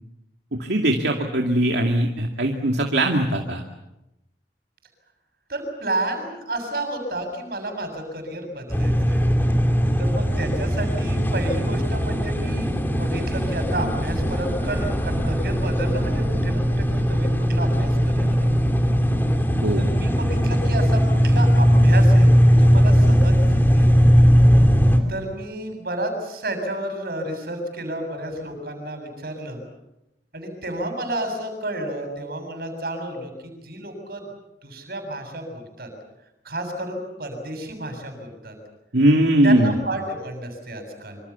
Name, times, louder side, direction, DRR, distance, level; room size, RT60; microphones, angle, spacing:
voice 1, 0.5-3.6 19.6-19.8 38.9-39.8, right 1 dB, 75° right, 2 dB, 2.4 m, -20 dB
voice 2, 5.5-9.2 10.0-18.5 19.8-23.9 25.1-29.6 30.3-34.3 34.6-35.9 36.4-38.5 39.4-41.2, right 1 dB, 60° right, 6 dB, 7.4 m, -31 dB
sound 1, 8.7-25.0, equal, 10° left, 2.9 m, -19 dB
26.5 x 26.0 x 7.1 m, 0.89 s
head